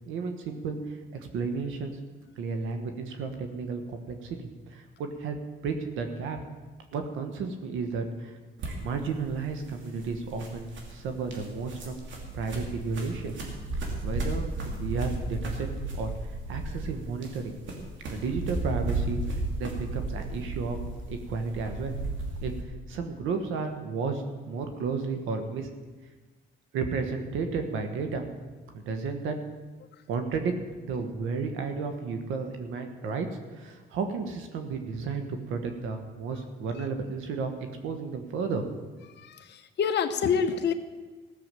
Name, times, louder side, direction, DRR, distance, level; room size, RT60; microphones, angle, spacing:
voice 1, 0.1-0.8 1.1-2.0 2.4-5.4 5.6-6.4 6.9-8.4 8.8-12.0 12.3-13.3 14.0-15.7 15.9-16.1 16.5-17.5 18.1-20.8 21.1-21.9 22.4-22.5 22.9-25.7 26.7-28.3 28.7-29.4 30.1-30.5 30.8-33.3 33.5-37.5 37.8-38.6, right 4 dB, 90° right, 6 dB, 1.4 m, -32 dB
sound 1, 8.6-22.6, right 2 dB, 70° right, 2.7 m, -34 dB
voice 2, 39.2-40.7, left 6 dB, 60° left, 6 dB, 1.0 m, -27 dB
15.5 x 7.1 x 7.6 m, 1.3 s
cardioid pair, 90°, 20 cm